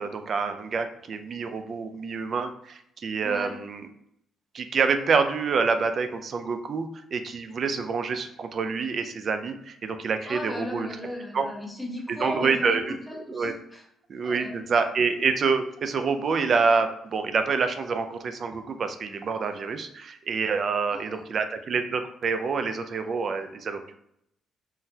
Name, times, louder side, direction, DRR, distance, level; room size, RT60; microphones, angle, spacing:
voice 1, 0.0-3.8 4.5-10.9 11.3-11.5 12.1-12.9 13.3-13.5 14.1-24.0, right 5 dB, 50° right, 8 dB, 0.4 m, -27 dB
voice 2, 3.2-3.6 10.2-12.8 13.1-13.8 14.2-14.6 20.9-21.2, left 1 dB, 5° left, 0 dB, 0.9 m, -36 dB
3.7 x 2.1 x 2.7 m, 0.75 s
cardioid pair, 90°, 0 cm